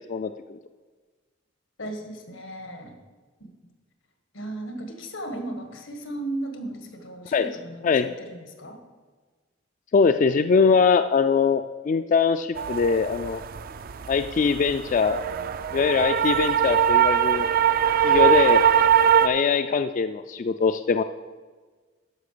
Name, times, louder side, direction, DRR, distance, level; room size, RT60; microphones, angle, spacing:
voice 1, 1.8-2.9 3.4-3.5 4.3-8.8, right 1 dB, 90° left, 5 dB, 1.7 m, -36 dB
voice 2, 7.8-8.1 9.9-13.4 14.1-15.2 15.7-17.4 18.0-18.6 19.2-21.0, left 5 dB, 40° left, 9 dB, 0.3 m, -22 dB
sound 1, 12.6-19.3, right 8 dB, 50° right, 0.4 m, -21 dB
11.5 x 5.7 x 6.7 m, 1.4 s
head